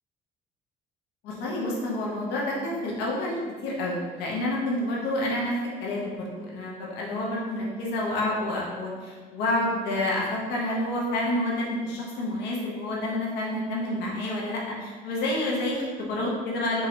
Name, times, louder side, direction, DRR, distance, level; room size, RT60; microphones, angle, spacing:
voice 1, 1.2-5.5 5.8-16.9, left 1 dB, 85° left, -3 dB, 0.8 m, -29 dB
3.6 x 2.8 x 3.0 m, 1.5 s
cardioid pair, 110°, 17 cm